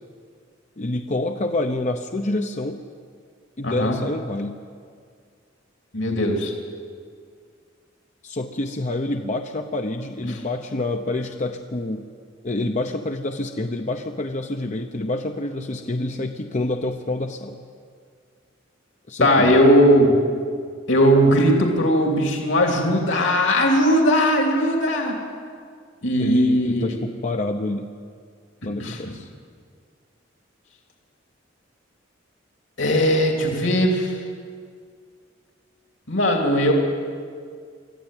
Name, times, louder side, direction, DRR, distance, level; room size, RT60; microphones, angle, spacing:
voice 1, 0.8-2.8 3.6-4.6 8.2-12.0 12.4-17.6 19.1-19.6 26.2-27.9 28.6-29.3, left 2 dB, 40° left, 5 dB, 0.8 m, -27 dB
voice 2, 3.6-4.0 5.9-6.5 19.2-20.2 20.9-25.2 26.0-26.8 28.6-29.0 32.8-34.2 36.1-36.7, equal, 70° left, 1 dB, 2.8 m, -18 dB
24.0 x 14.5 x 9.0 m, 2.1 s
head